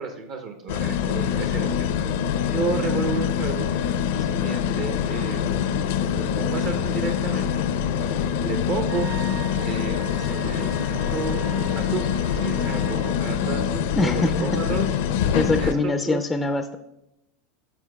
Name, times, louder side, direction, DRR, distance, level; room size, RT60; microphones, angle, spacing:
voice 1, 0.0-1.9 2.5-5.4 6.1-7.6 8.4-9.1 9.6-10.8 11.1-11.4 11.8-14.9 15.5-16.2, right 5 dB, 50° right, 5 dB, 0.7 m, -32 dB
sound 1, 0.7-15.7, left 8 dB, 70° left, 0.5 m, -25 dB
Wind instrument woodwind instrument, 8.9-13.1, right 7 dB, 80° right, 2.4 m, -41 dB
voice 2, 14.0-14.5 15.3-16.8, left 3 dB, 15° left, 7 dB, 0.4 m, -23 dB
12.5 x 4.6 x 2.2 m, 0.88 s
hypercardioid pair, 110°, 0 cm